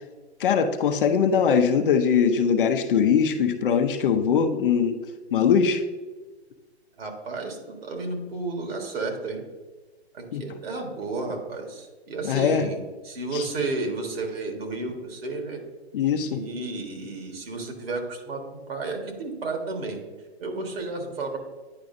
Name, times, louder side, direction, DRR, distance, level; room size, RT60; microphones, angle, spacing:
voice 1, 0.4-5.0 5.3-5.8 10.3-10.4 12.2-12.7 13.3-13.4 15.9-16.4, left 7 dB, 55° left, 7 dB, 0.7 m, -21 dB
voice 2, 7.0-9.4 10.1-15.6 16.2-18.4 18.7-20.0 20.4-21.4, right 3 dB, 65° right, 3 dB, 1.7 m, -32 dB
9.7 x 4.7 x 2.6 m, 1.3 s
hypercardioid pair, 150°, 33 cm